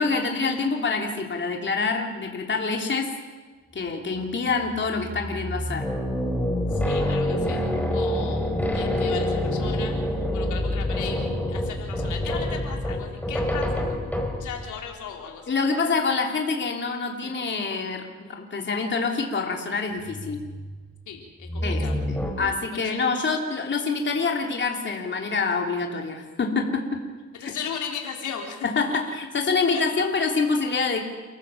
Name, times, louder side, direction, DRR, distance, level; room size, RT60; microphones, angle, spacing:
voice 1, 0.0-3.1 3.7-5.9 15.5-20.4 21.6-21.9 22.4-27.0 27.4-27.5 28.6-31.0, left 4 dB, 40° left, 1 dB, 3.3 m, -26 dB
sound 1, 4.6-14.8 20.0-20.7 21.4-22.3, left 1 dB, 5° left, 4.4 m, -27 dB
voice 2, 6.7-7.6 7.9-10.0 10.3-11.2 11.5-14.0 14.4-15.5 17.2-17.3 21.1-22.0 22.7-23.1 27.4-28.7 29.7-29.9, left 7 dB, 75° left, 1 dB, 3.6 m, -36 dB
29.5 x 14.5 x 7.2 m, 1.4 s
cardioid pair, 90°, 30 cm